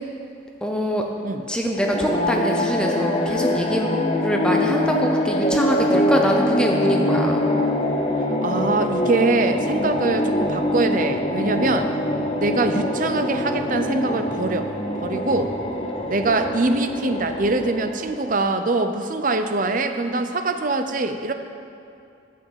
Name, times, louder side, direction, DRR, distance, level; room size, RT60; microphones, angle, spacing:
voice 1, 0.6-1.1 1.5-3.9 4.2-7.4, equal, 5° left, 1 dB, 0.7 m, -24 dB
sound 1, 1.8-18.4, left 1 dB, 30° left, 0.9 m, -24 dB
voice 2, 8.4-11.9 12.4-14.7 15.0-15.5 16.1-21.3, right 2 dB, 45° right, 7 dB, 0.6 m, -23 dB
10.0 x 7.6 x 7.2 m, 2.7 s
head